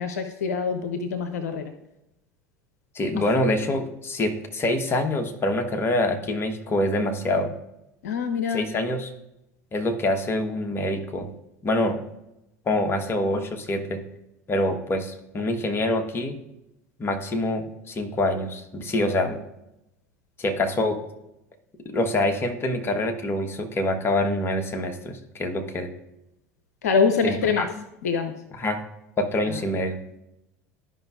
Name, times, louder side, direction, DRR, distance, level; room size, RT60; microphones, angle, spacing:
voice 1, 0.0-1.6 8.0-8.6 26.8-27.7 28.0-28.3 29.5-29.6, left 5 dB, 75° left, 7 dB, 0.7 m, -24 dB
voice 2, 2.9-7.5 8.5-9.1 9.7-11.3 11.6-12.0 12.7-14.0 14.5-16.3 17.0-19.4 20.4-21.0 21.8-25.9 27.2-27.7 28.6-28.8 29.2-30.0, left 1 dB, 25° left, 4 dB, 1.2 m, -25 dB
12.5 x 5.3 x 2.5 m, 0.87 s
figure-of-eight pair, 75°, 9 cm